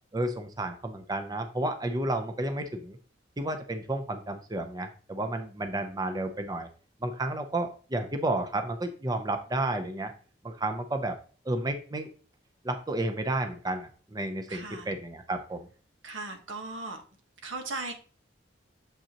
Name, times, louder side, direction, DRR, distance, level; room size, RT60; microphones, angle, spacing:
voice 1, 0.1-3.0 3.4-6.7 7.0-10.1 10.4-11.2 11.5-12.1 12.6-15.7, right 1 dB, 20° right, 6 dB, 0.5 m, -31 dB
voice 2, 14.5-14.9 16.0-17.0 17.4-17.9, right 3 dB, 85° right, 5 dB, 1.3 m, -37 dB
7.2 x 5.4 x 2.9 m, 0.40 s
head